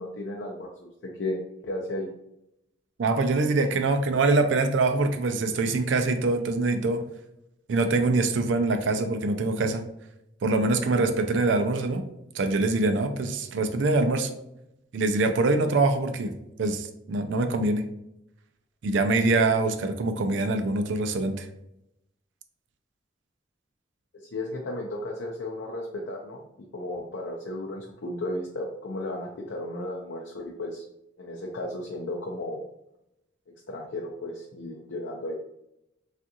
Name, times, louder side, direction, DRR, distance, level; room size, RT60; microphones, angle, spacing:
voice 1, 0.0-1.4 1.6-2.1 24.1-26.4 26.7-30.8 31.2-32.6 33.7-35.3, left 1 dB, 70° left, -1 dB, 0.5 m, -34 dB
voice 2, 3.0-7.0 7.7-9.9 10.4-12.1 12.3-14.3 14.9-17.8 18.8-21.5, right 3 dB, 70° right, 7 dB, 0.4 m, -24 dB
3.4 x 2.4 x 2.7 m, 0.83 s
head